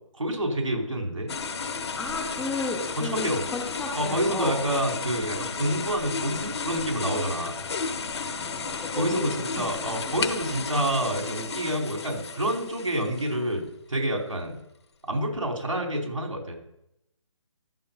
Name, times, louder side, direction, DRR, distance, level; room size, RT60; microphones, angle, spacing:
voice 1, 0.2-1.3 3.0-3.4 4.0-7.6 9.0-14.6 15.1-16.5, right 1 dB, 80° right, 2 dB, 4.4 m, -28 dB
sound 1, 1.3-13.6, left 5 dB, 55° left, 1.1 m, -33 dB
voice 2, 1.7-4.6 8.1-10.2, left 2 dB, 5° left, 1 dB, 0.5 m, -34 dB
13.0 x 7.0 x 5.5 m, 0.83 s
figure-of-eight pair, 150°, 17 cm